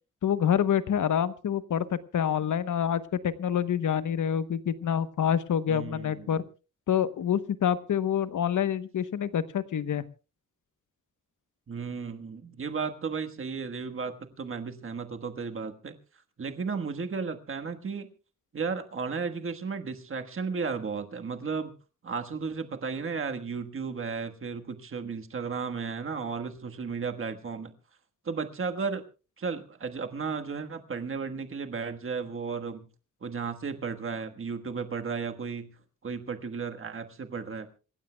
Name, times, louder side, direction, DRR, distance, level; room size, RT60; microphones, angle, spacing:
voice 1, 0.2-6.4 6.9-10.0, left 9 dB, 75° left, 14 dB, 1.0 m, -27 dB
voice 2, 5.7-6.4 11.7-15.9 16.4-18.1 18.5-21.7 22.0-27.7 28.2-29.0 29.4-32.9 33.2-35.7 36.0-37.7, right 5 dB, 40° right, 6 dB, 1.4 m, -34 dB
27.0 x 15.5 x 2.2 m, 0.33 s
wide cardioid pair, 150°, 31 cm